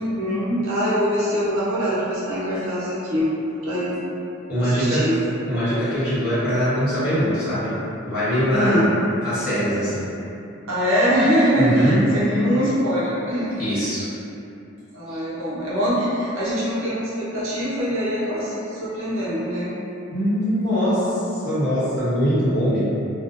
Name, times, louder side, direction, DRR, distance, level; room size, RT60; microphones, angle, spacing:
voice 1, 0.0-3.3 3.6-4.0 4.6-5.2 8.5-8.8 10.7-13.6 14.9-19.7, equal, 80° right, -9 dB, 0.7 m, -23 dB
voice 2, 4.5-5.1 5.4-7.7 8.0-8.9 9.2-10.1 11.6-12.0 13.6-14.1 15.1-15.2 20.1-22.8, equal, 50° left, -13 dB, 1.1 m, -22 dB
2.4 x 2.1 x 2.4 m, 2.8 s
head